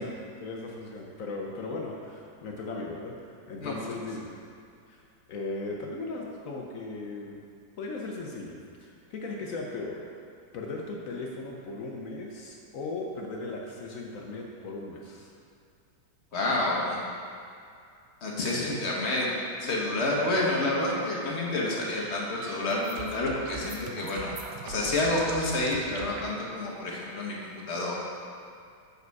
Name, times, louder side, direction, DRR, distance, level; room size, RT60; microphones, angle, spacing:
voice 1, 0.0-4.3 4.9-5.0 5.3-7.4 7.8-10.0 10.5-15.3 18.5-18.8, left 3 dB, 70° left, -1 dB, 0.7 m, -37 dB
voice 2, 16.3-17.0 18.2-19.3 19.6-24.3 24.6-27.9, left 2 dB, 40° left, -4 dB, 1.1 m, -29 dB
sound 1, 21.9-26.2, right 4 dB, 70° right, 1.2 m, -41 dB
6.6 x 4.9 x 4.6 m, 2.4 s
omnidirectional pair, 2.1 m